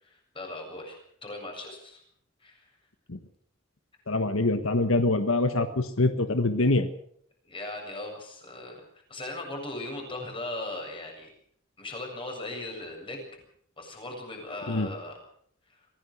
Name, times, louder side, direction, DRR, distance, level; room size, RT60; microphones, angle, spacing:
voice 1, 0.0-2.0 2.4-2.7 7.4-8.8 9.1-11.3 11.8-13.4 13.8-15.2 15.7-15.8, left 2 dB, 25° left, 2 dB, 7.6 m, -38 dB
voice 2, 4.1-6.9 14.7-14.9, left 2 dB, 80° left, 9 dB, 1.5 m, -24 dB
25.0 x 17.0 x 6.5 m, 0.64 s
head